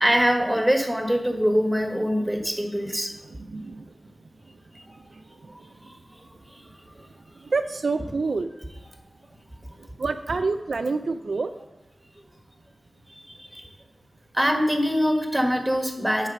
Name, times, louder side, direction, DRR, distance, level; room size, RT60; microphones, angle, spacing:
voice 1, 0.0-3.1 4.7-4.8 13.1-13.7 14.3-16.3, equal, 10° right, 4 dB, 1.5 m, -23 dB
voice 2, 3.4-3.9 5.4-5.7 7.4-8.5 10.0-11.5, right 4 dB, 75° right, 8 dB, 0.3 m, -27 dB
7.4 x 4.8 x 5.7 m, 0.95 s
cardioid pair, 45°, 0 cm